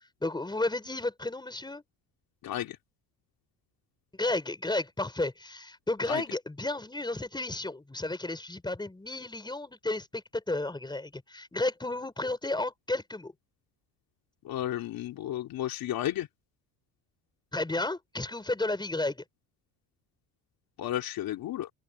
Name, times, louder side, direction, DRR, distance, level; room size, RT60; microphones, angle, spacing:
voice 1, 0.2-1.8 4.1-13.3 17.5-19.2, left 2 dB, 10° left, 5.8 m, -32 dB
voice 2, 2.4-2.8 6.1-6.2 14.4-16.3 20.8-21.7, left 12 dB, 60° left, 2.8 m, -33 dB
open air
supercardioid pair, 100°, 40 cm